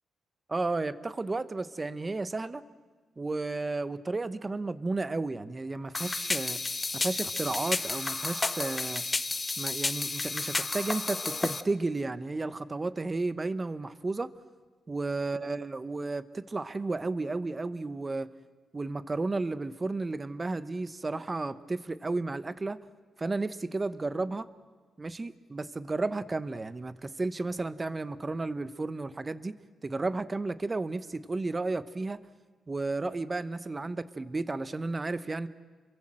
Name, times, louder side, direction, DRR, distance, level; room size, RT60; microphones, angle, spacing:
voice 1, 0.5-2.6 3.2-6.6 6.9-9.0 9.6-14.3 14.9-18.3 18.7-22.8 23.2-24.5 25.0-29.5 29.8-32.2 32.7-35.5, right 3 dB, 25° right, 14 dB, 1.0 m, -33 dB
sound 1, 5.9-11.6, left 3 dB, 25° left, 0.9 m, -32 dB
29.5 x 23.0 x 7.7 m, 1.3 s
cardioid pair, 115°, 0 cm